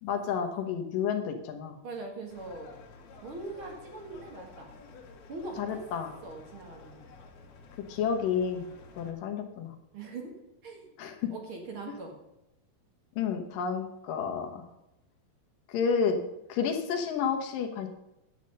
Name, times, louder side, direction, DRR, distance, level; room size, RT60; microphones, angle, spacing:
voice 1, 0.0-1.8 5.6-6.2 7.9-8.7 9.0-9.7 11.0-11.3 13.2-14.7 15.7-16.2 16.5-17.9, left 6 dB, 70° left, 4 dB, 2.6 m, -30 dB
voice 2, 1.8-2.7 3.2-4.7 5.3-5.8 6.2-7.1 9.9-10.3 10.6-10.9 11.3-12.1, right 3 dB, 45° right, 2 dB, 1.9 m, -41 dB
sound 1, 2.3-9.1, left 4 dB, 85° left, 3.5 m, -51 dB
10.5 x 8.0 x 5.3 m, 0.88 s
omnidirectional pair, 4.4 m